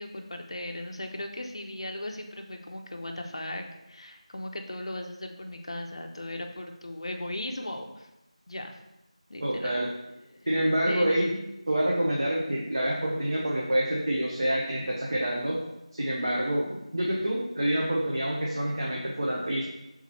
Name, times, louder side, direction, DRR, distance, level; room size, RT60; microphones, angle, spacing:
voice 1, 0.0-8.1 8.5-8.8 9.3-10.0 10.3-10.5 10.9-11.4, left 1 dB, 50° left, 4 dB, 0.5 m, -37 dB
voice 2, 9.4-9.9 10.5-11.3 11.7-15.6 15.9-19.7, right 1 dB, 40° right, -4 dB, 0.5 m, -27 dB
3.6 x 3.0 x 4.2 m, 0.92 s
figure-of-eight pair, 175°, 4 cm